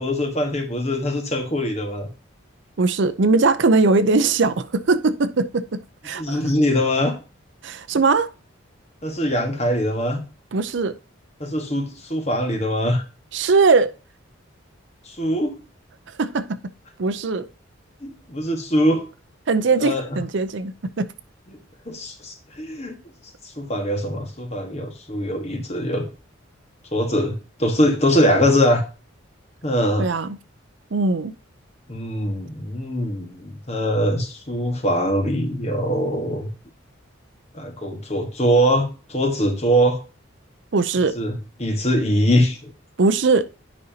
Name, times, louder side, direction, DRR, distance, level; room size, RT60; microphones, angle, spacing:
voice 1, 0.0-2.1 6.1-7.1 9.0-10.2 11.4-13.0 15.1-15.6 18.0-19.0 19.8-20.0 21.9-23.0 23.6-26.1 26.9-28.8 29.6-30.1 31.9-36.5 37.5-40.0 41.1-42.7, equal, 35° left, 1.4 m, -22 dB
voice 2, 2.8-5.8 6.0-6.4 7.6-8.3 10.5-10.9 13.3-13.9 16.2-16.6 17.0-17.5 19.5-21.1 30.0-30.4 30.9-31.3 40.7-41.2 43.0-43.5, right 3 dB, 65° right, 0.5 m, -20 dB
9.5 x 5.3 x 2.8 m
head